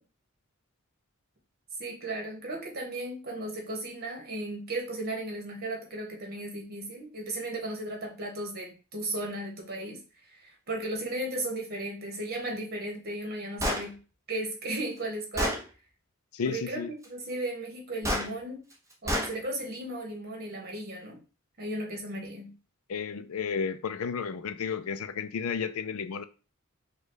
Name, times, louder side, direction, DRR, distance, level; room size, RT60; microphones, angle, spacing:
voice 1, 1.8-10.0 10.3-14.0 14.3-15.6 16.4-18.6 19.0-21.2 21.6-22.5, right 1 dB, 45° right, 1.5 m, -35 dB
Gunshot gunfire, 13.6-13.9 14.8-14.9 15.4-15.6 18.0-18.3 19.1-19.3, equal, 15° right, 1.0 m, -28 dB
voice 2, 16.3-16.9 22.9-26.2, left 6 dB, 85° left, 0.5 m, -32 dB
5.0 x 2.4 x 4.0 m
head